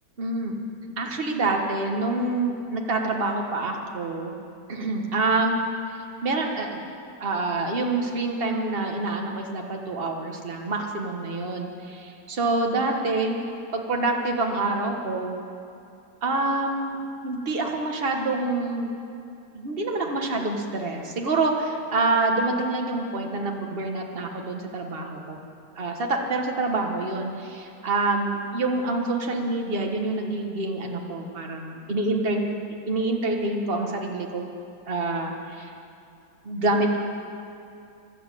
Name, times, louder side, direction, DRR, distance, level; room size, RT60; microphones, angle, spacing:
voice 1, 0.2-0.5 1.0-4.4 4.7-5.6 6.2-6.8 7.2-13.4 13.7-15.4 16.2-17.0 17.2-18.9 19.5-25.4 25.8-32.4 32.9-34.5 34.9-35.7 36.4-37.0, right 2 dB, 35° right, 2 dB, 1.5 m, -26 dB
13.5 x 12.0 x 8.4 m, 2.5 s
omnidirectional pair, 1.9 m